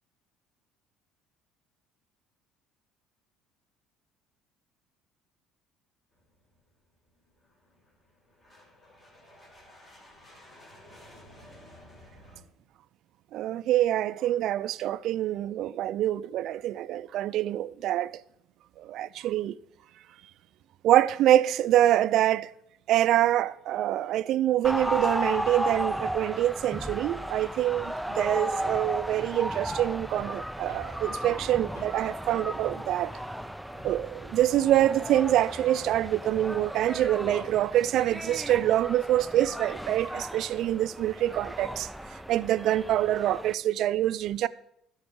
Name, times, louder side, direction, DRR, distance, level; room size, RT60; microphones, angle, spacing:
sound 1, 6.1-12.4, left 1 dB, 30° left, 5.8 m, -54 dB
voice 1, 13.3-18.1 18.8-19.6 20.8-22.5 22.9-33.1 33.8-44.5, right 13 dB, 65° right, 0.5 m, -25 dB
sound 2, 24.6-43.5, equal, ahead, 0.4 m, -35 dB
Hammer, 27.3-34.7 34.9-36.7, left 3 dB, 75° left, 3.1 m, -53 dB
13.5 x 5.5 x 7.9 m
supercardioid pair, 85°, 0 cm